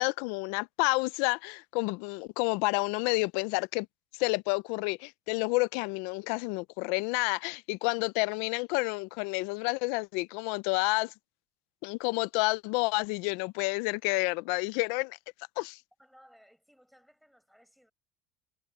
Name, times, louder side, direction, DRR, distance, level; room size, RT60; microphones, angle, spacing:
voice 1, 0.0-3.9 4.2-11.1 11.8-15.2 15.6-15.8, left 26 dB, 80° left, 0.4 m, -29 dB
voice 2, 16.0-17.9, equal, ahead, 6.7 m, -60 dB
supercardioid pair, 120°, 0 cm